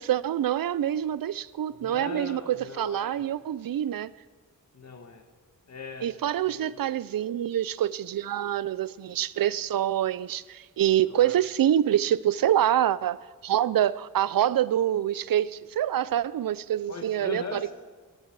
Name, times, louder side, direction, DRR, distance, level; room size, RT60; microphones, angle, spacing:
voice 1, 0.0-4.1 6.0-17.6, right 11 dB, 85° right, 0.5 m, -26 dB
voice 2, 1.7-3.2 4.7-5.2 5.7-6.1 6.5-6.8 11.1-11.4 16.9-17.7, left 4 dB, 50° left, 1.8 m, -40 dB
21.0 x 14.0 x 4.7 m
wide cardioid pair, 130°, 34 cm